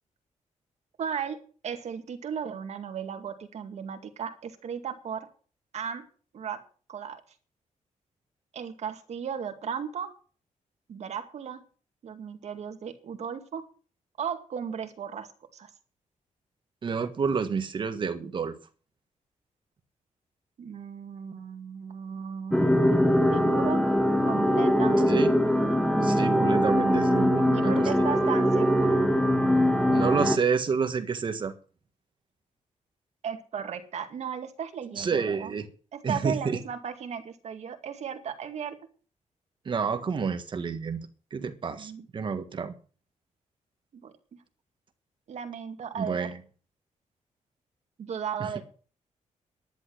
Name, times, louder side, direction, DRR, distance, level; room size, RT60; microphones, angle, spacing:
voice 1, 1.0-1.4 1.6-5.3 5.7-6.0 6.3-6.6 6.9-7.2 8.5-10.1 10.9-11.6 12.0-13.6 14.2-15.7 20.6-23.0 23.3-23.8 24.2-25.7 27.4-29.0 33.2-35.5 35.9-38.8 41.8-42.1 43.9-44.4 45.3-46.3 48.0-48.6, right 7 dB, 60° right, 7 dB, 2.1 m, -35 dB
voice 2, 16.8-18.6 24.9-25.3 26.0-27.9 29.9-31.5 35.0-35.7 36.0-36.6 39.6-42.7 46.0-46.4 48.4-48.5, right 5 dB, 40° right, 9 dB, 1.5 m, -29 dB
sound 1, 22.5-30.4, equal, 5° left, 1.3 m, -22 dB
11.0 x 11.0 x 6.3 m, 0.39 s
wide cardioid pair, 170°, 13 cm